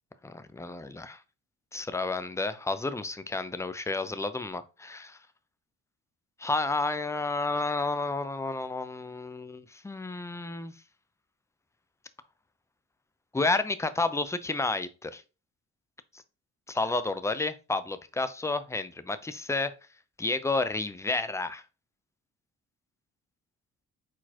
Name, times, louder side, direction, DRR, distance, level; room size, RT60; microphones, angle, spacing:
voice 1, 0.2-1.2 1.7-4.6 4.9-5.0 6.4-10.7 13.3-15.2 16.7-19.7 20.2-21.6, left 3 dB, 10° left, 12 dB, 0.5 m, -31 dB
4.5 x 4.1 x 2.8 m, 0.31 s
cardioid pair, 90°, 30 cm